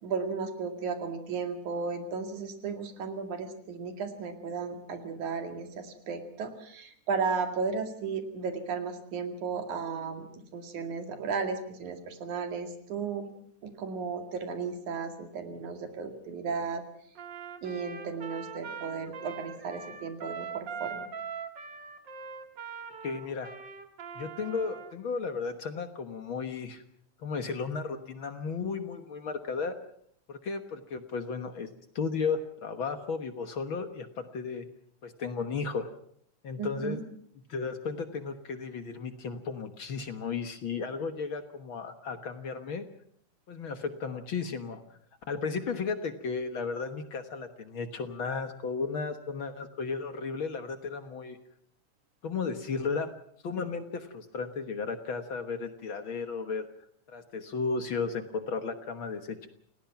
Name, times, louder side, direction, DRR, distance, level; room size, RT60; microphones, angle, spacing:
voice 1, 0.0-13.3 13.6-16.8 17.6-21.1 36.6-37.0, right 5 dB, 90° right, 6 dB, 3.7 m, -34 dB
Trumpet, 17.1-24.9, right 6 dB, 45° right, 2.0 m, -42 dB
voice 2, 23.0-23.5 24.2-26.8 27.2-29.8 30.3-31.7 32.0-34.7 35.0-35.9 36.4-37.0 37.5-42.9 43.5-44.8 45.3-51.4 52.2-53.1 53.4-56.7 57.1-59.5, left 5 dB, 55° left, 8 dB, 1.8 m, -34 dB
28.5 x 17.5 x 6.0 m, 0.66 s
omnidirectional pair, 3.3 m